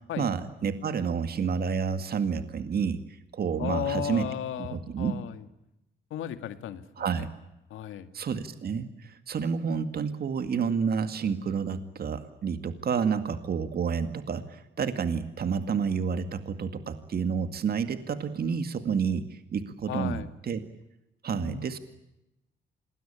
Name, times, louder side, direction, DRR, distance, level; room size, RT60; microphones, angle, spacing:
voice 1, 0.2-4.3 4.7-5.1 7.0-7.3 8.1-20.6 21.2-21.8, right 6 dB, 50° right, 9 dB, 2.1 m, -29 dB
voice 2, 3.6-5.4 6.1-7.3 7.7-8.1 19.9-20.3 21.4-21.8, left 9 dB, 80° left, 10 dB, 2.0 m, -35 dB
27.0 x 20.5 x 8.8 m, 0.90 s
cardioid pair, 90°, 20 cm